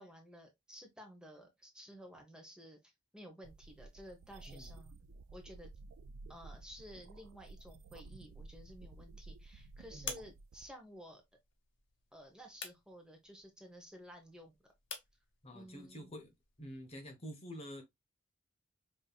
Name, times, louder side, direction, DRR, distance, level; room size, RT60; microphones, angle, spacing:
voice 1, 0.0-4.9 5.3-5.7 6.3-11.2 12.1-14.7 15.5-16.1, equal, 5° right, 0.8 m, -54 dB
sound 1, 3.4-10.7, right 3 dB, 80° right, 0.4 m, -53 dB
sound 2, 7.9-17.1, left 6 dB, 65° left, 0.9 m, -52 dB
voice 2, 15.4-16.3 16.6-17.8, equal, 30° left, 0.8 m, -48 dB
5.2 x 2.7 x 2.3 m
head